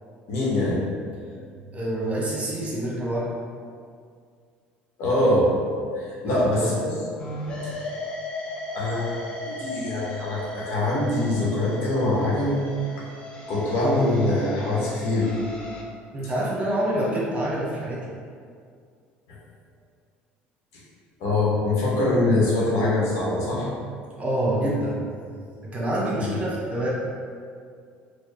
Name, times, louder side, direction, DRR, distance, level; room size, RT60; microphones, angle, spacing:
voice 1, 0.3-0.8 5.0-5.5 5.9-7.1 7.6-7.7 8.7-12.6 13.5-15.3 19.3-19.4 21.2-23.7 26.3-26.4, left 1 dB, 70° left, -5 dB, 1.0 m, -23 dB
voice 2, 1.4-3.3 6.2-6.7 16.1-18.1 24.1-25.0 25.6-26.9, right 1 dB, 25° right, -6 dB, 1.2 m, -27 dB
sound 1, 7.2-15.8, left 1 dB, 20° left, 0.8 m, -36 dB
4.1 x 2.2 x 3.3 m, 2.2 s
supercardioid pair, 80°, 5 cm